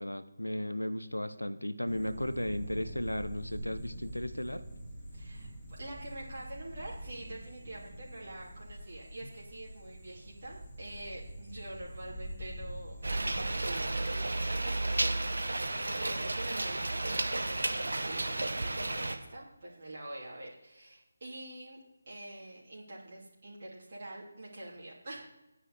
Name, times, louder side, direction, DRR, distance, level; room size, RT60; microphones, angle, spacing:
voice 1, 0.0-4.6, left 1 dB, 85° left, 12 dB, 0.9 m, -35 dB
sound 1, 1.9-13.9, right 1 dB, 10° left, 3.7 m, -45 dB
voice 2, 5.1-21.8 22.1-25.3, right 1 dB, 45° right, -5 dB, 3.0 m, -46 dB
sound 2, 13.0-19.2, right 2 dB, 65° right, 1.3 m, -32 dB
9.8 x 8.3 x 7.0 m, 0.98 s
figure-of-eight pair, 155°, 0 cm